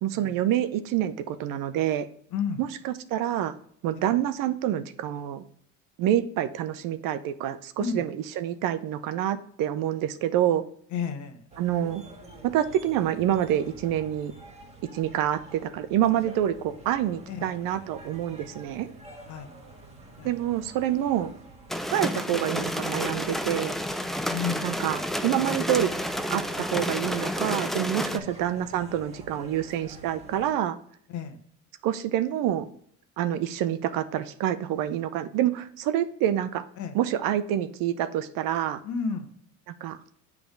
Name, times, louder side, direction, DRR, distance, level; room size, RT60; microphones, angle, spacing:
voice 1, 0.0-2.1 2.6-3.5 3.8-5.4 6.0-10.6 11.6-12.0 12.4-14.3 14.9-18.9 20.2-21.3 21.9-23.7 24.6-25.9 26.3-30.8 31.8-32.7 33.2-36.7 36.9-38.8 39.8-40.0, right 11 dB, 60° right, 12 dB, 0.7 m, -27 dB
voice 2, 2.3-2.6 7.8-8.0 10.9-11.4 17.3-17.6 19.3-19.5 20.2-20.5 24.3-24.8 28.1-28.3 31.1-31.4 36.8-37.0 38.8-39.3, left 6 dB, 50° left, 8 dB, 1.1 m, -32 dB
sound 1, 11.5-30.5, right 2 dB, 15° right, 1.6 m, -47 dB
sound 2, 21.7-28.2, equal, ahead, 0.3 m, -30 dB
6.9 x 3.6 x 5.1 m, 0.62 s
supercardioid pair, 90°, 38 cm